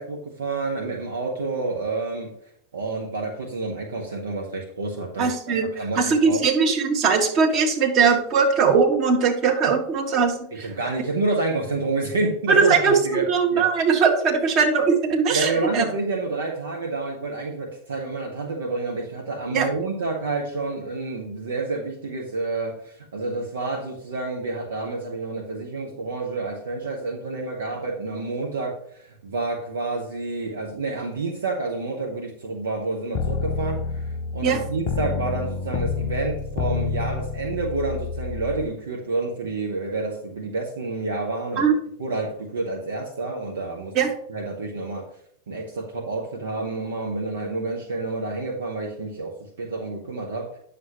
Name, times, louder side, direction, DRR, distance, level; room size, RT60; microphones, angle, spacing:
voice 1, 0.0-2.3 2.7-6.4 10.5-13.7 15.3-41.7 42.0-43.9 44.3-45.0 45.5-50.6, right 3 dB, 65° right, 2 dB, 1.1 m, -29 dB
voice 2, 5.2-5.7 5.9-10.7 12.5-15.8 19.5-19.7 34.4-34.6 41.6-41.8 43.9-44.1, right 5 dB, 35° right, 1 dB, 1.7 m, -20 dB
sound 1, 33.1-38.7, left 5 dB, 45° left, 0.6 m, -28 dB
9.4 x 6.8 x 2.9 m, 0.68 s
figure-of-eight pair, 90°, 0 cm